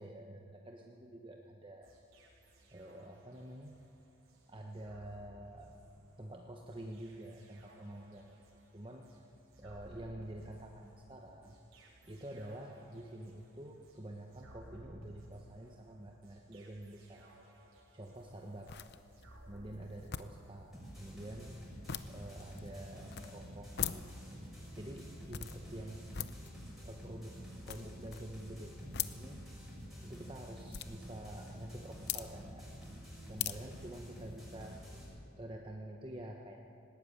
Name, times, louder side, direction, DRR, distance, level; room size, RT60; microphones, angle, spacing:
voice 1, 0.0-1.9 2.7-3.7 4.5-5.7 6.2-8.3 8.7-9.1 9.6-11.6 12.1-17.3 17.9-18.7 19.5-21.6 22.1-24.1 24.7-26.1 26.8-29.4 30.0-32.7 33.3-34.8 35.4-36.6, right 1 dB, 20° right, 1 dB, 1.1 m, -48 dB
sound 1, 1.8-21.0, right 1 dB, 70° right, 4.6 m, -60 dB
sound 2, 18.1-34.7, left 9 dB, 50° left, 0.7 m, -46 dB
sound 3, 20.7-35.0, equal, ahead, 5.9 m, -49 dB
19.5 x 18.0 x 8.7 m, 2.6 s
head